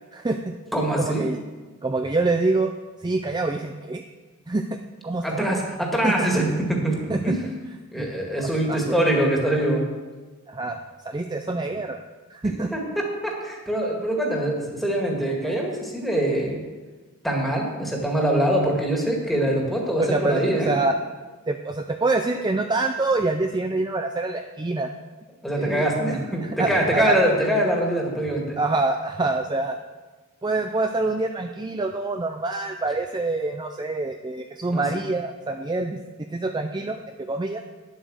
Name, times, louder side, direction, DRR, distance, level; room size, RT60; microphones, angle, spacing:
voice 1, 0.1-0.5 1.0-1.4 1.8-2.7 3.0-4.0 4.5-4.8 5.0-5.6 6.0-6.3 7.1-7.3 8.0-8.1 8.4-9.0 10.5-10.8 11.0-12.0 12.3-12.7 20.0-20.9 21.5-24.9 25.6-25.8 26.4-27.2 28.6-29.8 30.4-36.0 36.3-37.6, right 3 dB, 20° right, 6 dB, 0.4 m, -26 dB
voice 2, 0.7-1.3 5.2-7.5 7.9-9.8 12.7-16.6 17.2-20.7 25.4-28.6 34.7-34.8, right 1 dB, ahead, -1 dB, 2.0 m, -24 dB
10.0 x 8.1 x 6.3 m, 1.3 s
head